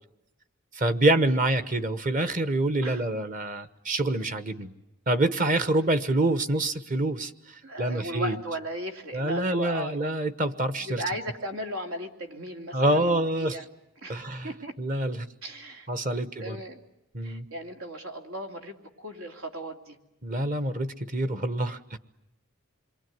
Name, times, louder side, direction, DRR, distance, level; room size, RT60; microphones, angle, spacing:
voice 1, 0.7-4.7 5.1-7.3 7.8-8.3 9.1-11.0 12.7-13.6 14.1-14.5 14.8-15.3 15.9-16.6 17.1-17.5 20.2-22.0, right 1 dB, 35° right, 12 dB, 1.1 m, -26 dB
voice 2, 7.6-10.0 10.8-13.7 14.0-14.8 15.4-16.8 17.2-20.0, equal, 85° right, 5 dB, 2.9 m, -37 dB
27.5 x 23.0 x 9.4 m, 0.89 s
head